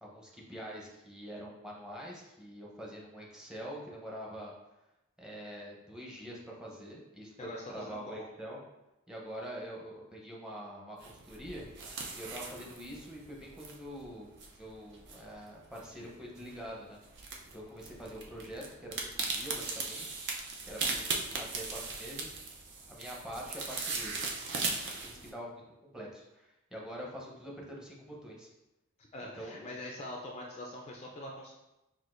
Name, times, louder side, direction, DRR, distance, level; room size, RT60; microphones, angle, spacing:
voice 1, 0.0-4.5 5.2-8.6 9.1-11.7 12.2-14.3 14.6-17.0 17.5-20.2 20.6-21.0 21.3-22.3 22.9-24.2 25.0-25.6 25.9-28.5 29.3-29.7, equal, 5° right, -3 dB, 0.7 m, -45 dB
voice 2, 7.4-8.3 12.5-12.7 25.1-25.4 29.0-31.6, left 1 dB, 30° left, -1 dB, 0.4 m, -44 dB
sound 1, 11.0-25.3, right 4 dB, 55° right, 0.5 m, -39 dB
5.8 x 2.5 x 2.5 m, 0.95 s
head